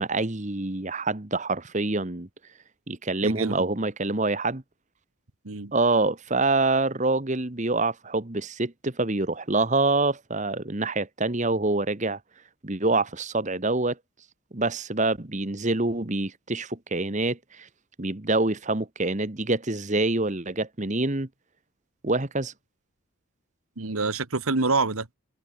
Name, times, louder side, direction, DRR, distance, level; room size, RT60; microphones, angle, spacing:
voice 1, 0.0-2.3 2.9-4.6 5.7-12.2 12.6-14.0 14.5-17.7 18.0-21.3 22.0-22.5, right 2 dB, 35° right, 1.4 m, -26 dB
voice 2, 3.2-3.7 5.4-5.7 23.8-25.1, right 3 dB, 75° right, 1.6 m, -26 dB
head